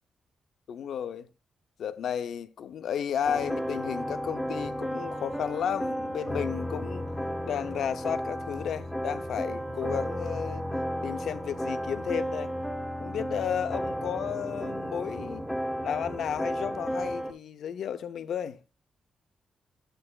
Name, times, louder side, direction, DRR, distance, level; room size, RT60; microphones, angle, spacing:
voice 1, 0.7-1.3 1.8-7.0 7.4-10.6 11.0-12.5 13.0-15.5 15.8-18.6, left 8 dB, 75° left, 0.5 m, -33 dB
sound 1, 3.2-17.3, equal, ahead, 1.0 m, -33 dB
8.8 x 7.6 x 2.3 m
cardioid pair, 95°, 0 cm